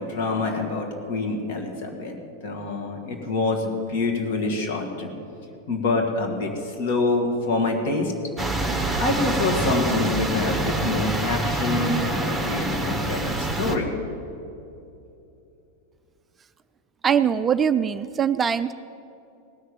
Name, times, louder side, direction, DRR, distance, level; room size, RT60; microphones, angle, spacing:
voice 1, 0.0-5.1 5.7-8.1 9.0-13.9, left 3 dB, 50° left, 3 dB, 2.2 m, -26 dB
sound 1, 8.4-13.8, right 1 dB, ahead, 1.4 m, -26 dB
voice 2, 17.0-18.7, right 8 dB, 20° right, 12 dB, 0.3 m, -22 dB
18.0 x 6.5 x 9.0 m, 2.8 s
figure-of-eight pair, 90°, 0 cm